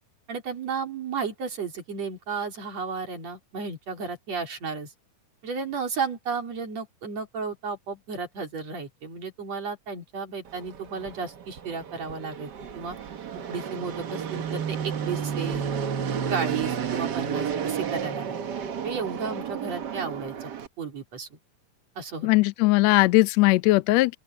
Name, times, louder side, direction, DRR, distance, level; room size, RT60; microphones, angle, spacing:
voice 1, 0.3-4.9 5.4-13.0 13.5-15.6 16.3-18.3 18.8-20.5 20.8-21.4 22.0-22.3, right 5 dB, 50° right, 4.9 m, -33 dB
Fixed-wing aircraft airplane, 10.5-20.7, right 7 dB, 90° right, 0.9 m, -32 dB
voice 2, 22.2-24.2, left 20 dB, 80° left, 1.5 m, -19 dB
open air
omnidirectional pair, 3.8 m